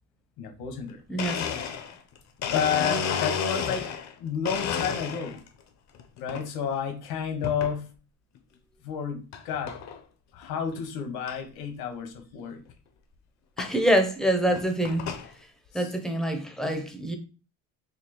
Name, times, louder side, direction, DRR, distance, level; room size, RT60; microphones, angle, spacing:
voice 1, 0.4-1.0 2.4-3.8 4.2-5.4 6.2-7.9 8.8-9.7 10.3-12.6 15.7-15.9, left 7 dB, 75° left, 1.0 m, -31 dB
Domestic sounds home sounds, 0.8-0.9 1.2-4.1 4.4-5.5 5.9-6.4 7.4-7.8 8.3-8.4 9.3-9.4 9.7-10.0 10.4-10.5 10.7-10.8 11.3-11.4 12.7-12.8 13.6-13.7 14.4-15.3, left 7 dB, 45° left, 0.5 m, -31 dB
voice 2, 1.1-1.4 13.6-15.0 15.7-17.2, right 1 dB, ahead, 0.5 m, -25 dB
4.3 x 2.7 x 2.8 m
cardioid pair, 135°, 38 cm